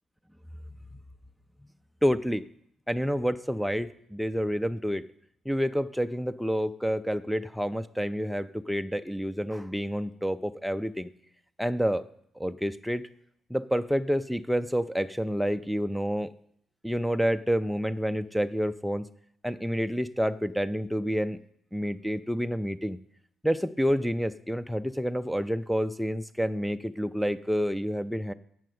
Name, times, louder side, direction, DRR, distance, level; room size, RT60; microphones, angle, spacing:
voice 1, 2.0-2.4 2.9-5.0 5.5-11.1 11.6-12.0 12.4-13.0 13.5-16.3 16.8-19.1 19.4-21.4 21.7-23.0 23.4-28.3, equal, ahead, 8 dB, 0.4 m, -28 dB
8.4 x 6.5 x 7.7 m, 0.68 s
cardioid pair, 90°, 0 cm